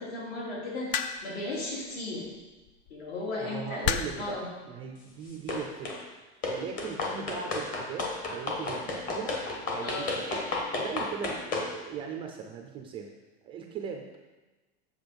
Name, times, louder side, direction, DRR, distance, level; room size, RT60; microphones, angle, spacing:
voice 1, 0.0-2.3 2.9-4.5 9.8-10.2, left 2 dB, 65° left, -4 dB, 3.4 m, -36 dB
sound 1, 0.9-1.4 2.7-2.9 3.8-4.3 5.3-5.6, left 8 dB, 45° left, 0.5 m, -30 dB
voice 2, 3.4-4.4 4.7-6.2 6.5-9.4 9.7-10.4 10.8-13.1 13.4-14.2, right 6 dB, 15° right, 3 dB, 0.4 m, -39 dB
sound 2, 5.5-6.0 6.4-11.7, left 3 dB, 25° left, 1.2 m, -33 dB
7.9 x 7.0 x 5.2 m, 1.2 s
supercardioid pair, 170°, 32 cm